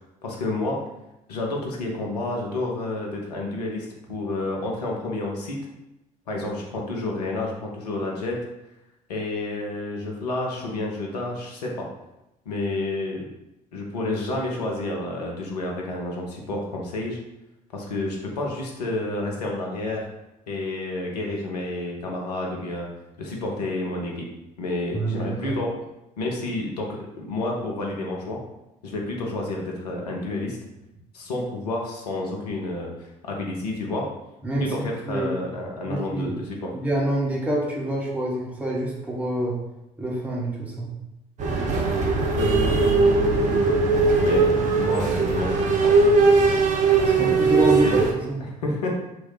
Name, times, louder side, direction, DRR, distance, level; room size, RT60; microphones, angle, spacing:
voice 1, 0.2-0.8 1.3-5.6 6.3-8.4 9.1-11.9 12.5-13.3 13.7-17.2 17.7-20.1 20.5-22.9 23.2-24.3 24.6-25.7 26.2-28.4 28.8-30.6 31.1-32.9 33.2-34.1 34.6-36.7 42.3-46.1 47.0-47.9 48.4-48.9, left 2 dB, 75° left, -1 dB, 0.8 m, -30 dB
voice 2, 24.9-25.5 34.4-34.7 35.1-35.3 35.9-36.4 36.7-39.5 40.0-40.9 47.2-48.0 48.3-48.4, right 1 dB, 5° right, -4 dB, 1.2 m, -26 dB
sound 1, 41.4-48.1, right 4 dB, 35° right, 0.8 m, -20 dB
3.1 x 2.6 x 3.9 m, 0.91 s
figure-of-eight pair, 55°, 20 cm